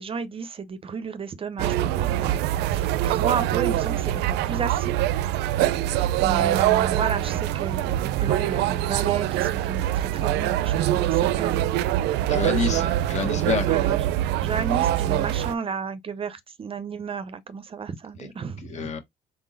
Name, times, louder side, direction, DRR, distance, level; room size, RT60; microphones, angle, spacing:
voice 1, 0.0-5.1 6.2-11.8 12.7-12.9 13.7-14.1 14.4-18.9, right 6 dB, 35° right, 0.6 m, -33 dB
sound 1, 1.6-15.5, right 13 dB, 85° right, 0.4 m, -24 dB
voice 2, 12.3-13.7 18.2-18.3 18.6-19.0, left 5 dB, 45° left, 1.5 m, -28 dB
4.4 x 3.7 x 2.5 m
cardioid pair, 110°, 17 cm